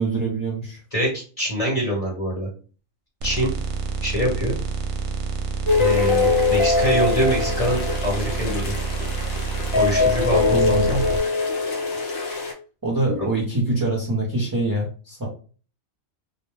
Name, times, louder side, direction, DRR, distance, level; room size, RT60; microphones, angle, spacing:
voice 1, 0.0-0.8 10.5-11.0 12.8-15.3, right 2 dB, 20° right, -4 dB, 0.6 m, -24 dB
voice 2, 0.9-2.5 3.2-3.5 4.0-4.6 5.8-8.7 9.7-11.0 13.1-13.3, equal, 30° left, -3 dB, 1.0 m, -24 dB
sound 1, 3.2-11.2, right 5 dB, 70° right, 0.8 m, -28 dB
sound 2, 5.7-12.5, left 4 dB, 55° left, 1.0 m, -22 dB
2.3 x 2.1 x 3.2 m, 0.38 s
omnidirectional pair, 1.3 m